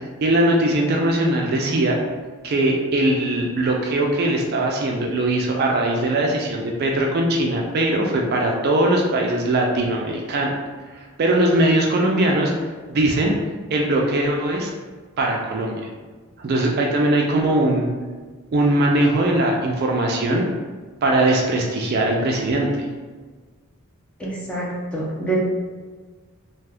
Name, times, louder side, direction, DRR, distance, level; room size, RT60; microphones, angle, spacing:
voice 1, 0.2-2.0 2.4-10.5 11.0-12.5 12.9-13.4 13.7-14.7 15.2-15.9 16.4-17.9 18.5-20.5 21.0-22.7, right 1 dB, 45° right, 0 dB, 0.3 m, -20 dB
voice 2, 24.2-25.4, right 2 dB, 5° left, -5 dB, 0.5 m, -26 dB
2.5 x 2.3 x 3.4 m, 1.4 s
head